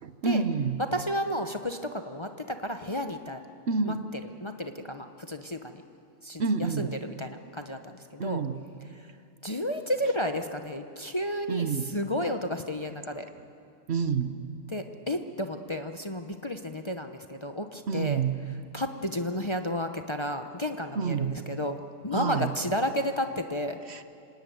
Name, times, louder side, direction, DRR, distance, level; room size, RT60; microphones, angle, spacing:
voice 1, 0.0-0.8 3.7-4.1 6.4-6.9 8.2-8.6 11.5-11.9 13.9-14.3 17.9-18.4 21.0-21.3 22.1-22.5 23.9-24.0, right 5 dB, 60° right, 10 dB, 1.2 m, -28 dB
voice 2, 0.9-3.4 3.8-4.0 4.4-5.8 6.2-8.4 9.4-13.3 14.7-18.2 18.7-21.8 22.0-23.8, left 1 dB, 25° left, 6 dB, 0.8 m, -32 dB
27.0 x 17.5 x 9.4 m, 2.5 s
omnidirectional pair, 1.3 m